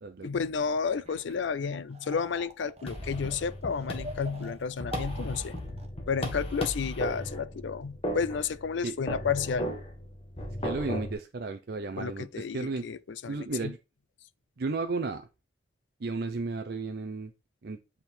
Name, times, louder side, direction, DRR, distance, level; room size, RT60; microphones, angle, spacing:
voice 1, 0.2-5.5 6.1-9.7 12.0-13.7, left 6 dB, 80° left, 0.5 m, -31 dB
sound 1, 1.0-1.4 1.6-5.9, right 2 dB, 35° right, 1.0 m, -45 dB
sound 2, 2.9-11.1, equal, 30° left, 1.4 m, -36 dB
voice 2, 10.6-12.9 13.3-13.8 14.6-15.2 16.0-17.3 17.6-17.8, right 3 dB, 60° right, 0.5 m, -33 dB
8.1 x 3.6 x 4.3 m
head